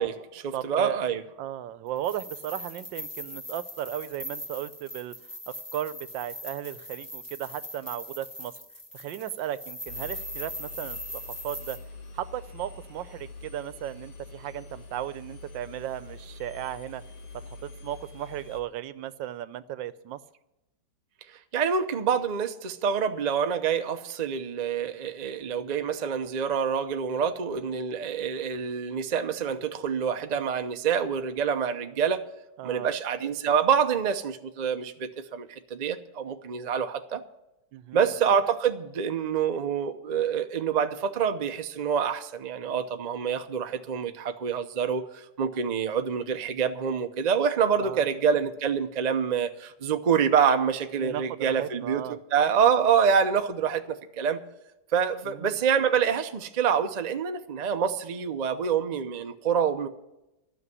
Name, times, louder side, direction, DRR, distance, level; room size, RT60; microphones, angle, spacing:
voice 1, 0.0-1.2 21.5-32.2 32.6-37.2 37.9-54.4 54.9-59.9, right 7 dB, 50° right, 7 dB, 0.5 m, -26 dB
voice 2, 0.5-1.0 1.4-5.2 5.5-8.5 8.9-11.8 12.1-17.0 17.5-20.2 32.6-32.9 37.7-38.1 47.8-48.1 51.0-52.2 55.3-55.5, right 12 dB, 85° right, 15 dB, 1.4 m, -36 dB
sound 1, 2.0-11.8, left 1 dB, 10° left, 1.6 m, -40 dB
Engine, 9.9-18.6, left 3 dB, 65° left, 2.1 m, -45 dB
12.5 x 6.5 x 9.6 m, 0.92 s
omnidirectional pair, 1.9 m